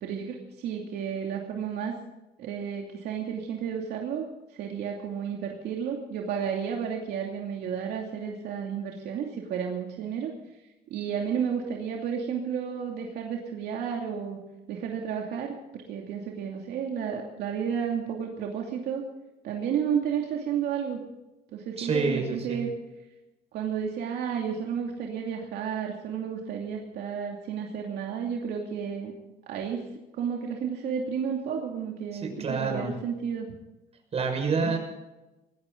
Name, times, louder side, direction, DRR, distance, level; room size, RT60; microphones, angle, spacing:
voice 1, 0.0-1.9 2.4-4.3 4.5-10.3 10.9-14.4 14.7-19.1 19.4-21.0 21.5-22.7 23.5-29.1 29.5-33.5 34.6-34.8, right 7 dB, 75° right, 0 dB, 2.7 m, -32 dB
voice 2, 21.8-22.6 32.1-32.9 34.1-34.8, right 4 dB, 40° right, 4 dB, 5.8 m, -28 dB
19.5 x 15.5 x 4.0 m, 1.0 s
cardioid pair, 110°, 17 cm